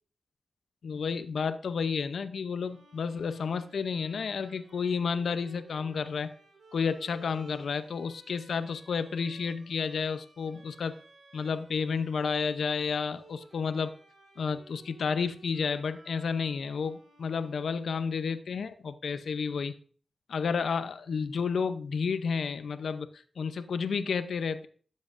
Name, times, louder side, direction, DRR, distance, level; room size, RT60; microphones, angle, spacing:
voice 1, 0.8-6.3 6.7-11.0 11.3-13.9 14.4-19.7 20.3-24.7, left 5 dB, 85° left, 11 dB, 0.6 m, -31 dB
sound 1, 2.6-18.3, right 2 dB, 85° right, 2.1 m, -57 dB
12.5 x 7.5 x 2.6 m, 0.43 s
cardioid pair, 70°, 0 cm